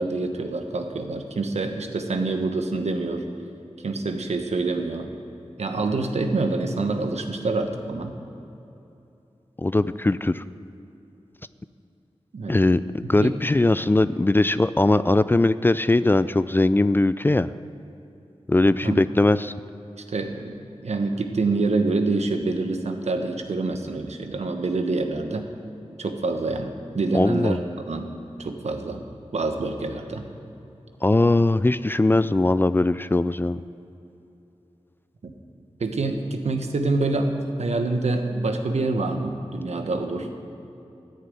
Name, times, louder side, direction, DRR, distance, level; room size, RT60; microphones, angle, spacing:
voice 1, 0.0-3.2 3.8-5.1 5.6-8.1 12.3-12.6 13.0-13.3 18.8-19.1 20.1-25.5 26.0-27.6 27.9-28.1 28.4-29.0 29.3-30.2 35.2-35.3 35.8-37.3 37.6-40.4, right 3 dB, 80° right, 5 dB, 1.2 m, -26 dB
voice 2, 9.6-10.4 12.5-17.5 18.5-19.5 27.1-27.6 31.0-33.6, left 2 dB, 20° left, 15 dB, 0.3 m, -20 dB
13.5 x 6.6 x 9.1 m, 2.8 s
wide cardioid pair, 70°, 11 cm